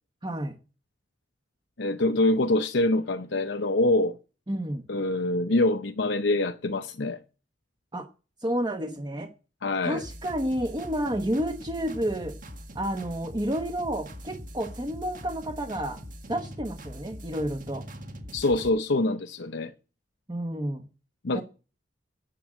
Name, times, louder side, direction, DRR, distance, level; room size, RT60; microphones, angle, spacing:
voice 1, 0.2-0.5 4.5-4.8 7.9-8.1 8.4-9.3 9.8-12.3 12.7-16.0 16.3-17.8 20.3-20.9 21.3-21.4, right 1 dB, 25° right, 1.1 m, -30 dB
voice 2, 1.8-4.2 4.9-7.2 9.6-10.0 18.3-19.7 21.2-21.4, left 2 dB, 75° left, 0.8 m, -25 dB
sound 1, 10.0-18.7, equal, 50° right, 1.7 m, -42 dB
10.0 x 7.7 x 7.4 m
head